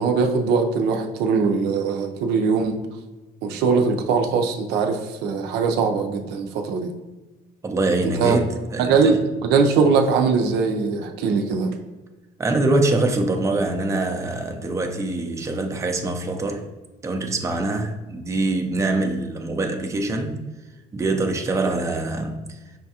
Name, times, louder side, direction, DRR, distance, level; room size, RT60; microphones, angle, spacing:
voice 1, 0.0-2.7 3.4-6.9 8.2-8.4 8.8-9.2 9.5-11.7, right 5 dB, 90° right, 0.5 m, -21 dB
voice 2, 7.6-9.2 12.4-16.7 17.0-20.4 20.9-22.6, right 2 dB, 15° right, 0.4 m, -24 dB
5.5 x 2.3 x 2.8 m
cardioid pair, 110°, 17 cm